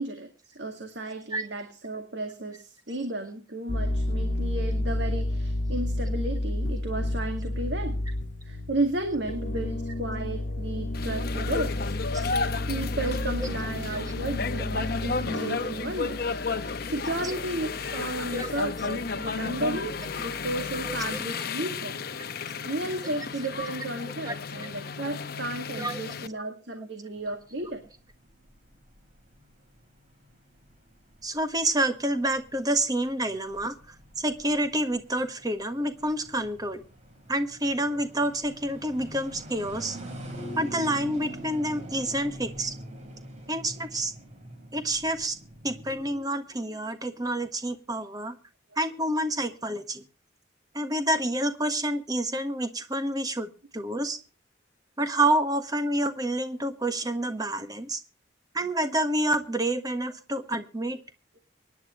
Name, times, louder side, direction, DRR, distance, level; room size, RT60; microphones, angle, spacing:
voice 1, 0.0-8.0 8.4-12.0 12.7-16.2 16.6-22.0 22.4-27.8, right 1 dB, 60° right, 5 dB, 2.0 m, -33 dB
sound 1, 3.7-21.1, left 1 dB, 65° left, 1.3 m, -32 dB
sound 2, 10.9-26.3, left 4 dB, 50° left, 0.9 m, -33 dB
voice 2, 20.8-21.2 23.0-23.1 24.2-24.3 25.8-26.0 31.2-33.8 34.2-36.8 37.3-40.0 40.5-42.7 43.5-44.1 44.7-45.3 45.6-48.3 48.8-50.0 50.7-54.2 55.0-58.0 58.5-61.0, right 1 dB, 20° right, 9 dB, 1.4 m, -28 dB
sound 3, 27.2-46.1, equal, 35° right, 4.1 m, -44 dB
24.5 x 10.5 x 3.1 m, 0.34 s
head